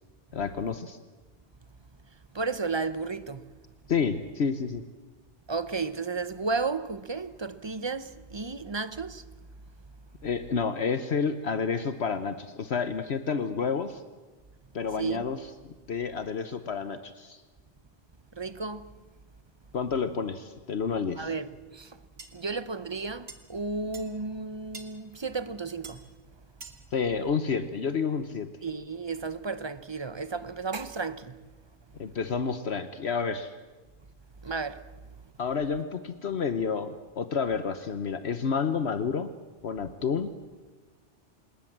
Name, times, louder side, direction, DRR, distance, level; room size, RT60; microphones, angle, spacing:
voice 1, 0.3-1.0 3.9-4.8 10.2-14.0 14.7-15.4 15.9-17.4 19.7-21.3 26.9-28.5 32.0-33.5 35.4-39.3 39.6-40.3, left 5 dB, 65° left, 1.2 m, -29 dB
voice 2, 2.3-3.5 5.5-9.2 15.0-15.3 18.3-18.9 21.2-22.0 22.3-26.1 28.6-31.4 34.4-34.8, right 4 dB, 25° right, 0.7 m, -33 dB
sound 1, 22.2-22.3 23.3-23.4 23.9-24.1 24.7-24.9 25.8-26.0 26.6-26.8, right 4 dB, 60° right, 2.0 m, -43 dB
26.5 x 20.5 x 7.5 m
omnidirectional pair, 1.2 m